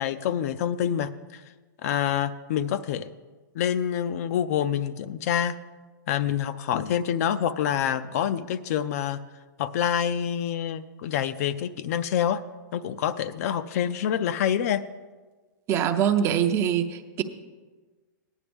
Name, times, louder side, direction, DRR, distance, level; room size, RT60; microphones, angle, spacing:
voice 1, 0.0-1.4 1.8-3.1 3.5-5.6 6.1-9.2 9.6-12.4 12.7-14.8, left 9 dB, 50° left, 13 dB, 0.4 m, -27 dB
voice 2, 15.7-17.2, right 9 dB, 25° right, 8 dB, 0.5 m, -23 dB
14.0 x 10.0 x 3.5 m, 1.3 s
hypercardioid pair, 145°, 11 cm